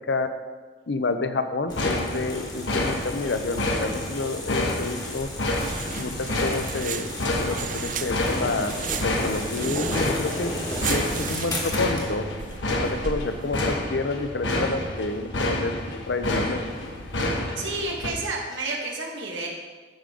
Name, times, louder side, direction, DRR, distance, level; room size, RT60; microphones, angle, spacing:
voice 1, 0.9-5.3 6.0-7.1 7.4-8.7 9.0-10.5 10.9-12.3 12.7-13.6 13.9-15.8 16.1-16.6, left 3 dB, 65° left, 8 dB, 0.7 m, -29 dB
sound 1, 1.7-18.1, left 1 dB, 80° left, 1.1 m, -29 dB
sound 2, 1.7-12.1, left 1 dB, 20° left, 1.3 m, -35 dB
sound 3, 5.2-13.7, right 7 dB, 45° right, 0.4 m, -36 dB
voice 2, 17.6-19.5, right 2 dB, 90° right, -1 dB, 1.7 m, -30 dB
13.0 x 5.3 x 3.8 m, 1.4 s
head